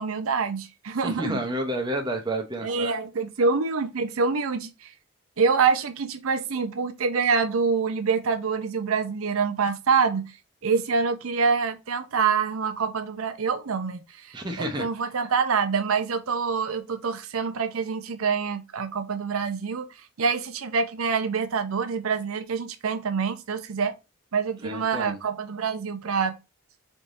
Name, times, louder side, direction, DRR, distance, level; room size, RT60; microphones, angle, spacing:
voice 1, 0.0-1.4 2.6-4.9 5.4-10.3 10.6-14.0 14.3-19.9 20.2-23.9 24.3-26.4, right 5 dB, 80° right, 0.6 m, -26 dB
voice 2, 1.0-2.9 14.3-14.8 24.6-25.2, right 1 dB, 20° right, 0.8 m, -30 dB
4.2 x 3.4 x 2.6 m
head